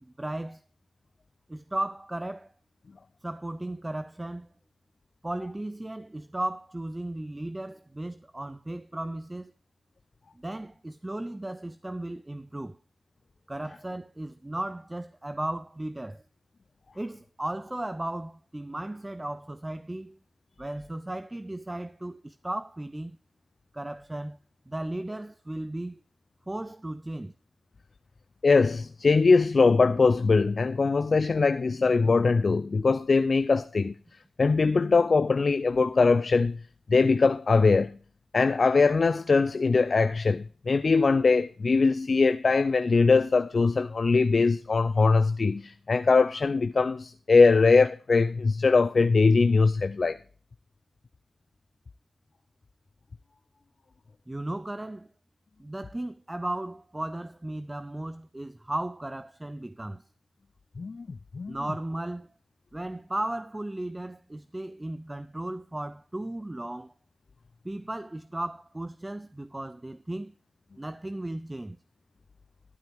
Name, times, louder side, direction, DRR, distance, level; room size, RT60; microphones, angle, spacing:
voice 1, 0.0-0.6 1.5-2.5 3.2-4.5 5.2-9.5 10.3-12.8 13.5-16.2 17.0-20.2 20.6-23.2 23.7-24.4 24.7-26.0 26.5-27.3 54.3-55.1 55.6-60.1 61.5-62.3 62.7-66.9 67.6-70.3 70.8-71.8, right 1 dB, 20° right, 0.5 m, -35 dB
voice 2, 28.4-33.9 34.4-36.6 36.9-37.9 38.3-50.2 60.8-61.1 61.3-61.6, left 4 dB, 55° left, 0.4 m, -22 dB
12.0 x 8.8 x 3.5 m
cardioid pair, 40°, 0 cm